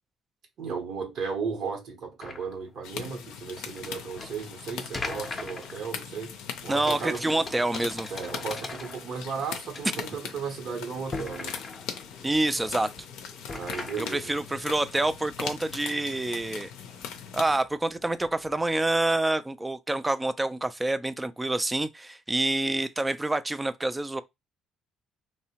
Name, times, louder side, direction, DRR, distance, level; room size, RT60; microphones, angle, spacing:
voice 1, 0.6-6.4 6.6-7.2 8.1-11.6 13.5-14.3, right 5 dB, 65° right, 0.9 m, -35 dB
sound 1, 2.2-19.2, left 3 dB, 30° left, 0.6 m, -43 dB
sound 2, 2.8-17.6, left 7 dB, 80° left, 0.5 m, -40 dB
voice 2, 6.7-8.1 12.2-12.9 14.0-16.7 17.3-24.2, right 2 dB, 15° right, 0.3 m, -27 dB
2.7 x 2.1 x 2.8 m
supercardioid pair, 70°, 0 cm